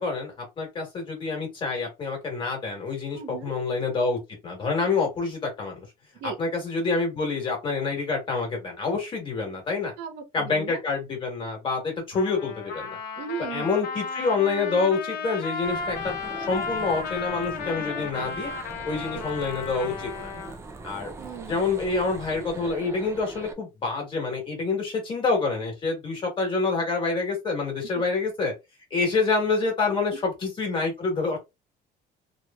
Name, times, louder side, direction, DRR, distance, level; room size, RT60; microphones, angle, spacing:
voice 1, 0.0-5.8 6.2-9.9 10.3-13.0 13.5-16.1 16.5-18.5 18.9-20.3 20.8-21.1 21.5-28.5 28.9-31.4, left 4 dB, 30° left, 1.4 m, -27 dB
voice 2, 3.1-3.5 6.1-6.4 10.0-10.8 13.2-13.7 19.1-19.2 21.2-21.6 27.9-28.0, right 7 dB, 80° right, 0.9 m, -37 dB
Trumpet, 12.1-20.6, left 5 dB, 65° left, 0.7 m, -34 dB
sound 1, 15.6-23.5, right 3 dB, 15° right, 0.4 m, -41 dB
3.0 x 2.6 x 2.2 m
cardioid pair, 170°, 18 cm